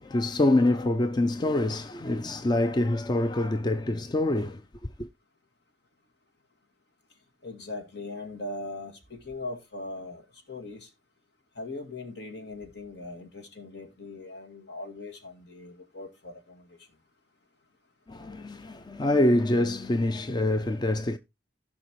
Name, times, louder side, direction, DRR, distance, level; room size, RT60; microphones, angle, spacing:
voice 1, 0.0-4.6 5.0-5.1 18.1-21.2, left 1 dB, 25° left, 0.4 m, -25 dB
voice 2, 7.4-10.2 10.5-10.9 11.6-16.7, left 2 dB, 65° left, 2.3 m, -40 dB
15.5 x 5.9 x 3.1 m
head